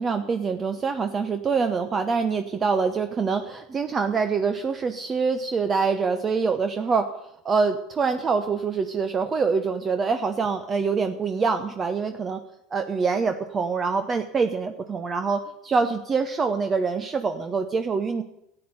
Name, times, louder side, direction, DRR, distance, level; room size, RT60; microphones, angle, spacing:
voice 1, 0.0-7.1 7.4-12.4 12.7-18.2, right 5 dB, 30° right, 8 dB, 0.9 m, -25 dB
13.0 x 8.8 x 7.9 m, 0.81 s
hypercardioid pair, 80°, 0 cm